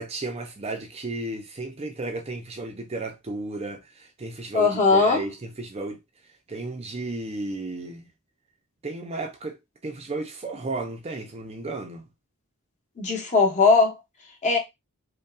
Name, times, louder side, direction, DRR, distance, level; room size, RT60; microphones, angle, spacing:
voice 1, 0.0-6.0 6.5-8.1 8.8-9.6 9.8-12.1, right 2 dB, 30° right, 0.5 m, -34 dB
voice 2, 4.5-5.2 13.0-13.9 14.4-14.6, left 4 dB, 35° left, 1.0 m, -19 dB
5.3 x 2.2 x 2.4 m
head